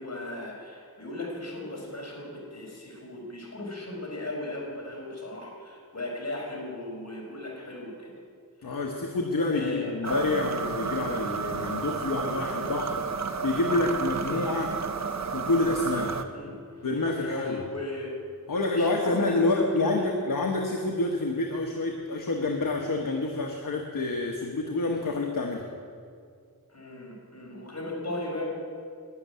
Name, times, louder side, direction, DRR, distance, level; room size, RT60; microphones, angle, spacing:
voice 1, 0.0-8.1 9.5-10.3 12.4-12.5 16.3-16.9 17.2-18.1 18.7-20.1 26.7-28.5, left 1 dB, 45° left, -1 dB, 4.6 m, -36 dB
voice 2, 8.6-13.0 13.4-14.8 15.3-16.2 16.8-17.6 18.5-25.6, left 2 dB, 65° left, 2 dB, 1.3 m, -28 dB
sound 1, 10.0-16.2, right 5 dB, 50° right, 0.8 m, -32 dB
12.0 x 10.0 x 9.5 m, 2.2 s
wide cardioid pair, 90°, 36 cm